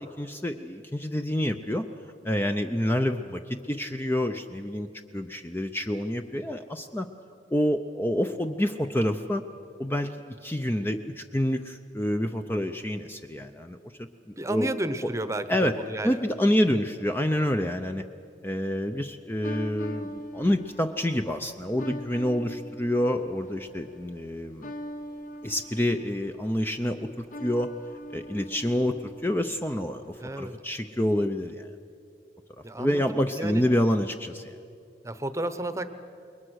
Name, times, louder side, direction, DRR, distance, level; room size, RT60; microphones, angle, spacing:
voice 1, 0.0-1.8 2.2-4.9 5.1-7.1 7.5-9.4 9.8-10.1 10.4-14.7 15.5-15.7 16.0-18.0 18.4-24.7 25.4-27.7 28.1-31.7 32.8-34.5, left 1 dB, 15° left, 6 dB, 0.6 m, -28 dB
voice 2, 14.4-16.2 30.2-30.5 32.6-33.6 35.0-35.9, right 1 dB, 15° right, 11 dB, 0.9 m, -32 dB
sound 1, 19.4-30.3, equal, 50° left, 1.4 m, -43 dB
28.0 x 22.0 x 6.4 m, 2.5 s
head